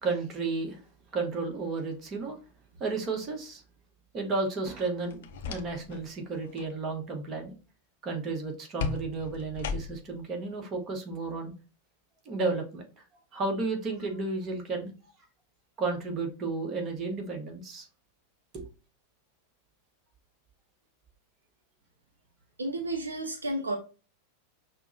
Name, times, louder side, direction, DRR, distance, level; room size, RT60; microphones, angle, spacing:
voice 1, 0.0-0.8 1.1-2.4 2.8-3.6 4.1-7.5 8.0-11.5 12.2-12.8 13.3-14.9 15.8-17.9 18.5-18.7, right 3 dB, 30° right, 3 dB, 1.0 m, -32 dB
sound 1, 5.0-6.0 6.4-6.7 8.8-10.2, left 6 dB, 55° left, 0.5 m, -36 dB
voice 2, 22.6-23.8, right 1 dB, 75° right, 6 dB, 0.5 m, -32 dB
5.7 x 2.1 x 2.6 m, 0.32 s
figure-of-eight pair, 90°, 0 cm